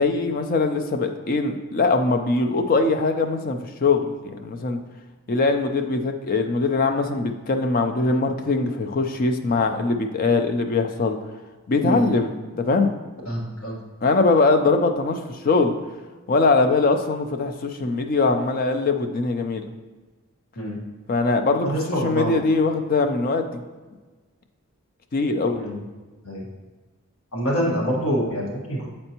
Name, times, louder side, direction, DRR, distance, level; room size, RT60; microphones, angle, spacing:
voice 1, 0.0-4.8 5.3-11.2 11.7-12.3 12.6-12.9 14.0-15.7 16.3-19.7 21.1-23.6 25.1-25.6, left 3 dB, 40° left, 6 dB, 0.4 m, -22 dB
voice 2, 13.2-13.8 20.6-20.8 21.6-22.4 25.5-25.8 26.2-26.5 27.3-28.9, equal, 85° left, -3 dB, 1.5 m, -26 dB
7.8 x 4.4 x 2.9 m, 1.3 s
head